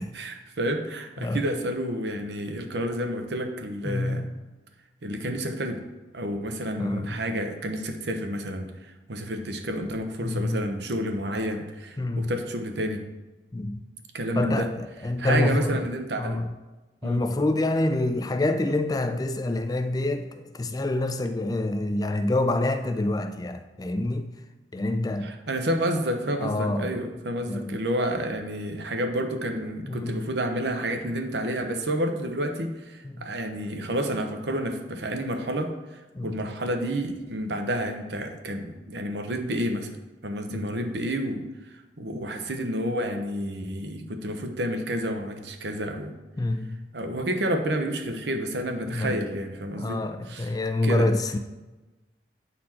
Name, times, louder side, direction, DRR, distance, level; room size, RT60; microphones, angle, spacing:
voice 1, 0.1-4.3 5.0-5.8 6.1-13.0 14.1-14.7 15.2-16.4 17.0-17.2 25.2-39.9 40.2-41.4 41.7-46.1 46.9-50.0 50.3-50.5 50.8-51.1, right 1 dB, 75° right, 0.9 m, -30 dB
voice 2, 3.8-4.3 6.8-7.2 10.2-10.6 12.0-12.3 13.5-13.8 14.4-15.8 16.2-16.5 17.0-24.3 24.7-25.3 26.4-27.0 27.5-27.8 29.9-30.2 33.0-33.2 36.1-36.4 40.5-40.8 46.4-46.9 48.9-49.2 49.7-51.4, left 2 dB, 20° left, 0.4 m, -27 dB
8.8 x 4.3 x 4.3 m
head